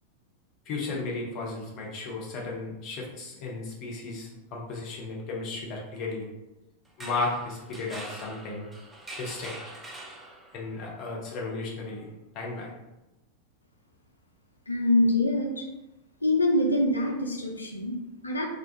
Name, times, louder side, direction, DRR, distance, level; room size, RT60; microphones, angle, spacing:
voice 1, 0.7-6.2 7.0-8.7 9.2-9.6 10.5-12.1 12.3-12.7, left 3 dB, 40° left, -2 dB, 0.6 m, -34 dB
sound 1, 6.9-10.7, right 1 dB, 10° right, 0.4 m, -43 dB
voice 2, 14.7-15.6 16.2-18.5, left 1 dB, 80° left, 1 dB, 0.3 m, -25 dB
2.4 x 2.2 x 2.7 m, 0.98 s
figure-of-eight pair, 90°, 0 cm